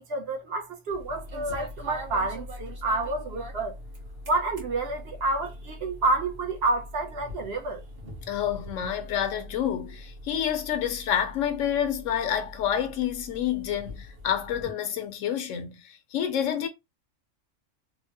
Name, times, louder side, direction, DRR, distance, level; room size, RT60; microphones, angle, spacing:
voice 1, 0.0-3.7 4.3-7.8, right 2 dB, 60° right, 0.8 m, -29 dB
sound 1, 0.9-14.7, equal, 45° right, 1.2 m, -42 dB
voice 2, 8.3-16.7, left 9 dB, 80° left, 1.0 m, -28 dB
3.1 x 2.1 x 2.7 m
omnidirectional pair, 1.3 m